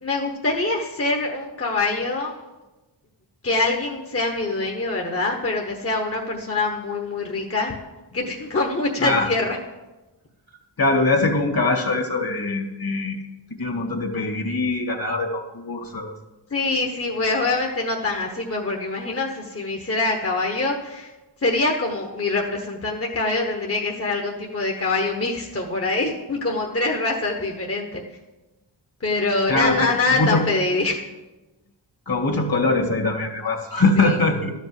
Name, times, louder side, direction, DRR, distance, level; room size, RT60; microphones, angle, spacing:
voice 1, 0.0-2.3 3.4-7.7 8.1-9.6 16.5-21.1 21.4-28.0 29.0-31.0 34.0-34.2, left 3 dB, 30° left, 1 dB, 1.2 m, -24 dB
voice 2, 10.8-13.2 13.6-16.1 29.5-30.4 32.1-34.5, left 2 dB, 50° left, 2 dB, 2.0 m, -22 dB
13.0 x 5.2 x 7.7 m, 1.1 s
wide cardioid pair, 90°, 45 cm